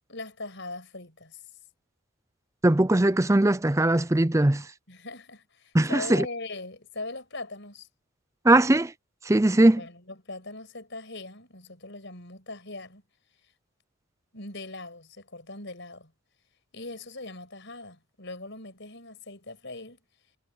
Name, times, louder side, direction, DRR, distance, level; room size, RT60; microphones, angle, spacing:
voice 1, 0.1-1.4 4.9-7.9 9.8-13.0 13.4-13.5 14.3-16.1 16.7-20.0, left 2 dB, 55° left, 5.9 m, -40 dB
voice 2, 2.6-4.7 5.7-6.2 8.4-8.9 9.2-9.8, right 1 dB, 15° right, 0.5 m, -20 dB
head